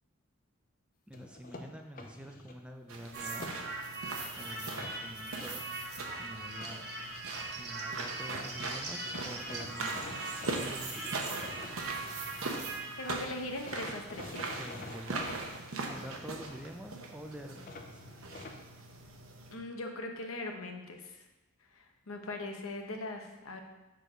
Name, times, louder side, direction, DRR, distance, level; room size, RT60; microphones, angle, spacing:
sound 1, 1.1-2.6 3.1-3.9 4.4-4.9 8.0-8.1 8.3-8.5 9.0-12.5 13.6-15.4 17.6-18.6, left 2 dB, 40° left, 0.7 m, -47 dB
voice 1, 1.1-3.5 4.4-5.6 6.2-6.9 7.6-10.3 10.6-11.4 14.5-15.3 15.9-18.0, equal, 5° right, 4 dB, 0.4 m, -47 dB
sound 2, 2.9-19.5, right 3 dB, 80° right, 0.9 m, -41 dB
sound 3, 3.1-13.2, right 3 dB, 50° right, 1.2 m, -41 dB
voice 2, 13.0-14.4 19.5-21.2 21.7-23.6, left 2 dB, 80° left, 3 dB, 0.9 m, -40 dB
6.6 x 4.6 x 5.2 m, 1.1 s
head